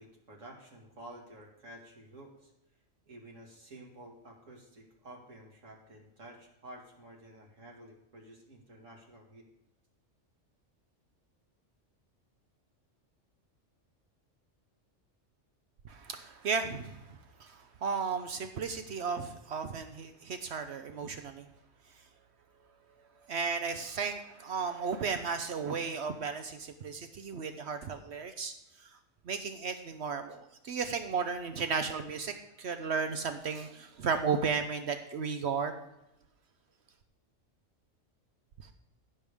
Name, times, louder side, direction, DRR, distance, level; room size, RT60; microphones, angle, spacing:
voice 1, 0.0-2.5 3.1-9.5, right 1 dB, 85° right, -1 dB, 2.4 m, -51 dB
voice 2, 15.8-21.5 23.3-28.5 28.8-28.9 29.2-35.7, right 5 dB, 65° right, 8 dB, 1.0 m, -34 dB
16.0 x 6.7 x 3.5 m, 0.89 s
omnidirectional pair, 1.3 m